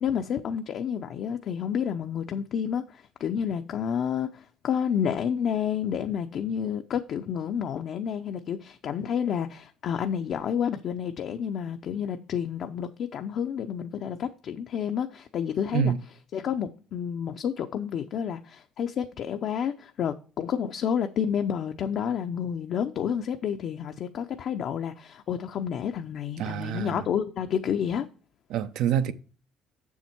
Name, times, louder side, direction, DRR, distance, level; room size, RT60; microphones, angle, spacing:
voice 1, 0.0-15.9 16.3-28.1, left 8 dB, 60° left, 0.6 m, -30 dB
voice 2, 26.4-27.0 28.5-29.1, right 9 dB, 75° right, 0.7 m, -26 dB
7.2 x 7.2 x 4.4 m
cardioid pair, 95°, 0 cm